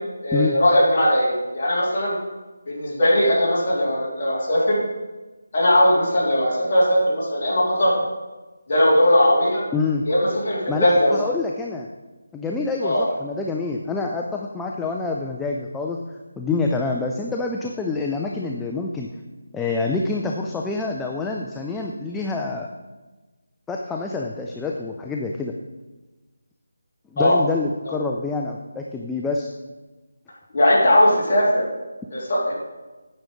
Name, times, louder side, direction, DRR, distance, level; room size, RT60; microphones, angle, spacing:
voice 1, 0.2-2.2 2.7-4.8 5.5-7.9 8.7-9.6 10.1-11.2 12.8-13.0 27.2-27.4 27.9-28.0 30.5-31.7 32.1-32.5, left 1 dB, 30° left, -7 dB, 3.5 m, -19 dB
voice 2, 9.7-10.0 10.7-11.9 12.3-19.1 19.5-22.7 23.7-25.5 27.1-29.5, left 3 dB, 5° left, 0 dB, 0.3 m, -27 dB
9.2 x 7.3 x 5.2 m, 1.2 s
figure-of-eight pair, 175°, 0 cm